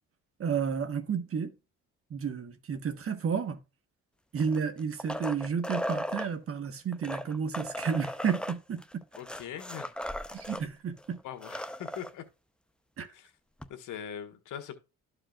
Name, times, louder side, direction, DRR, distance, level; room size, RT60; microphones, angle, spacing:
voice 1, 0.4-1.5 2.1-3.6 4.3-8.8 10.3-11.2 13.0-13.1, right 6 dB, 45° right, 1.3 m, -31 dB
sound 1, 4.4-6.3 6.9-10.6 11.0-11.1 11.3-12.1 13.6-13.7, equal, 5° left, 0.6 m, -37 dB
voice 2, 9.1-9.9 11.2-12.2 13.1-13.3 13.7-14.7, left 9 dB, 85° left, 1.5 m, -41 dB
12.5 x 5.0 x 2.4 m
cardioid pair, 90°, 30 cm